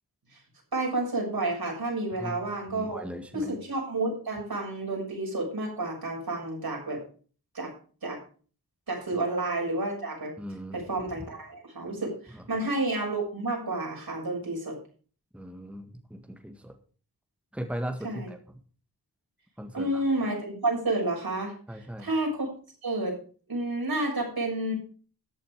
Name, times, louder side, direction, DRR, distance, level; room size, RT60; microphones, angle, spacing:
voice 1, 0.7-3.0 3.3-7.0 7.5-7.7 8.0-8.2 8.9-10.3 10.7-14.8 18.0-18.3 19.7-21.5 22.0-22.5 22.8-23.2 23.5-24.7, right 2 dB, 65° right, -1 dB, 6.7 m, -30 dB
voice 2, 2.7-3.5 10.4-10.8 15.3-16.8 17.5-18.4 19.6-20.0 21.7-22.1, equal, 5° right, 5 dB, 1.8 m, -38 dB
13.5 x 8.7 x 4.8 m, 0.40 s
wide cardioid pair, 65°, 39 cm